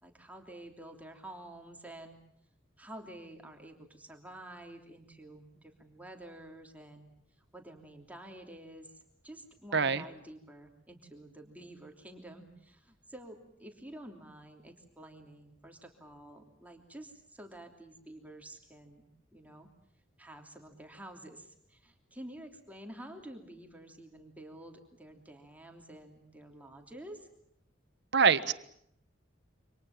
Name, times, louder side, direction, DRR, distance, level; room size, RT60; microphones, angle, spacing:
voice 1, 0.0-2.2 2.8-7.1 7.4-19.7 20.2-27.3, right 1 dB, 10° right, 3 dB, 3.1 m, -50 dB
voice 2, 9.7-10.0 28.1-28.5, right 5 dB, 60° right, 12 dB, 1.4 m, -24 dB
28.5 x 25.5 x 7.3 m, 0.70 s
head